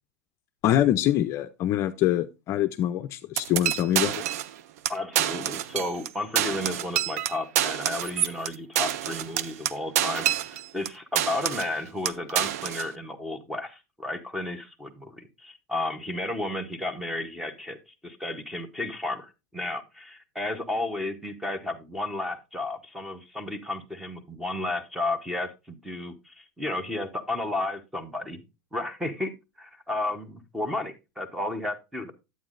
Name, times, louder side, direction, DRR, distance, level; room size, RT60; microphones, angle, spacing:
voice 1, 0.6-4.2, left 12 dB, 35° left, 0.5 m, -24 dB
sound 1, 3.4-4.5 4.8-4.9 5.1-6.1 6.3-10.9 11.2-11.7 12.0-12.9, right 11 dB, 70° right, 0.4 m, -27 dB
voice 2, 4.9-28.4 28.7-29.3 29.6-32.1, left 2 dB, 5° right, 0.8 m, -33 dB
9.3 x 8.2 x 2.5 m
supercardioid pair, 145°, 9 cm